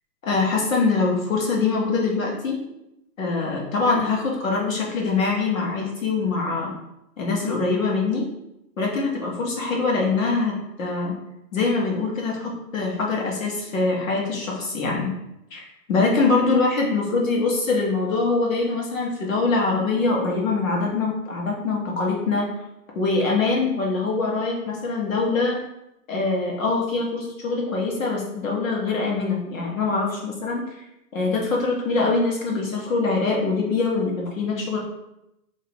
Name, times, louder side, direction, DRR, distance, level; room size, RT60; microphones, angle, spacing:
voice 1, 0.2-2.6 3.2-6.7 7.2-8.2 8.8-11.1 11.5-15.1 15.5-22.5 22.9-25.6 26.1-30.8 31.1-34.8, left 3 dB, 55° left, -2 dB, 1.3 m, -23 dB
5.3 x 2.8 x 3.0 m, 0.87 s
hypercardioid pair, 165°, 49 cm